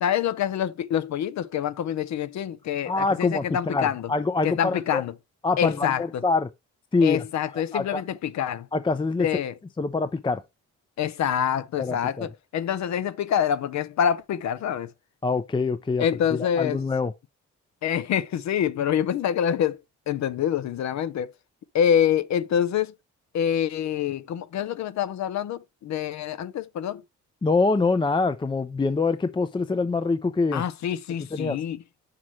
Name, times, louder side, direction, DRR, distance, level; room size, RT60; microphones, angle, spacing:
voice 1, 0.0-4.1 4.4-5.1 5.6-6.2 7.0-8.7 9.2-9.5 11.0-14.9 16.0-16.8 17.8-21.3 21.7-22.9 23.3-27.0 30.5-31.8, left 9 dB, 65° left, 0.7 m, -26 dB
voice 2, 2.9-5.0 5.4-6.5 6.9-7.2 7.5-8.0 8.7-9.3 9.8-10.4 11.8-12.3 15.2-16.0 16.3-17.1 27.4-30.6 31.3-31.6, left 3 dB, 15° left, 0.5 m, -25 dB
6.3 x 5.8 x 3.1 m
cardioid pair, 90°, 30 cm